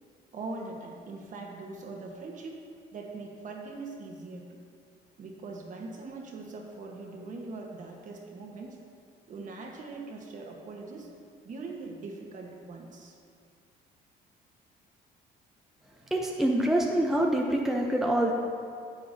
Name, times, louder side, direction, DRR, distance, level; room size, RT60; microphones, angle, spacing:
voice 1, 0.3-2.6 2.9-4.6 5.2-8.8 9.3-11.1 11.4-13.2, right 3 dB, 50° right, 1 dB, 1.2 m, -41 dB
voice 2, 16.1-18.3, right 1 dB, ahead, 0 dB, 0.7 m, -25 dB
10.0 x 7.9 x 2.7 m, 2.3 s
cardioid pair, 110°, 17 cm